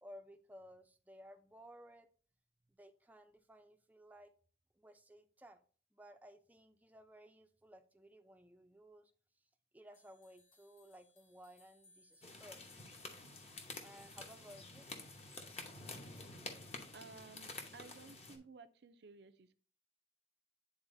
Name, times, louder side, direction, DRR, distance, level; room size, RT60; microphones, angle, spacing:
voice 1, 0.0-2.1 2.7-4.3 4.8-5.6 5.9-9.1 9.7-12.7 13.8-14.9, equal, 10° right, 7 dB, 0.5 m, -58 dB
sound 1, 9.9-15.2, left 2 dB, 50° left, 1.4 m, -70 dB
sound 2, 12.2-18.4, left 3 dB, 35° left, 0.9 m, -50 dB
voice 2, 16.9-19.5, right 4 dB, 60° right, 10 dB, 0.5 m, -56 dB
9.7 x 3.9 x 2.6 m, 0.42 s
head